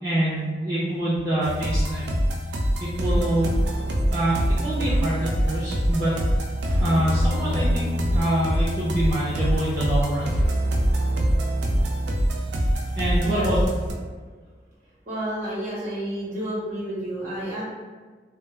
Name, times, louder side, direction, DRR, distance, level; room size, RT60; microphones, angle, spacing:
voice 1, 0.0-2.0 2.8-3.5 4.1-6.1 6.8-10.4 13.0-13.6, right 1 dB, 20° right, -12 dB, 0.5 m, -25 dB
sound 1, 1.4-13.9, equal, 80° right, 0.4 m, -24 dB
voice 2, 10.5-11.5 12.8-13.5 15.1-17.6, right 1 dB, 45° right, -7 dB, 1.0 m, -32 dB
2.1 x 2.0 x 3.1 m, 1.4 s
head